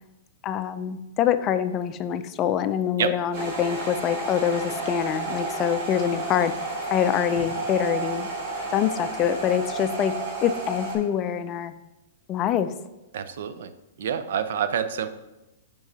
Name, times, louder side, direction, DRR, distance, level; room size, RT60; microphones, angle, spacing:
voice 1, 0.4-6.5 6.9-8.3 8.7-10.2 10.4-11.7 12.3-12.7, left 9 dB, 30° left, 11 dB, 0.4 m, -25 dB
sound 1, 3.3-11.0, right 3 dB, 45° right, 2.4 m, -31 dB
voice 2, 13.1-13.7 14.0-15.1, right 8 dB, 65° right, 11 dB, 0.5 m, -27 dB
9.5 x 4.5 x 2.8 m, 0.99 s
hypercardioid pair, 120°, 0 cm